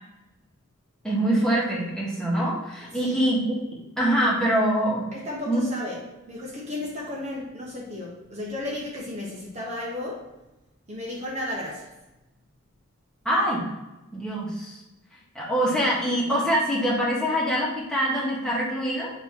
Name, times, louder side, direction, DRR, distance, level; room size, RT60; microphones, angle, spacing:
voice 1, 1.0-3.4 3.7-5.0 5.5-5.6 13.2-13.6 14.1-14.8 15.3-19.1, right 1 dB, 5° left, -6 dB, 1.6 m, -24 dB
voice 2, 5.1-6.0 6.3-10.2 10.9-11.9, left 1 dB, 35° right, -4 dB, 1.1 m, -33 dB
8.1 x 3.0 x 4.5 m, 1.0 s
head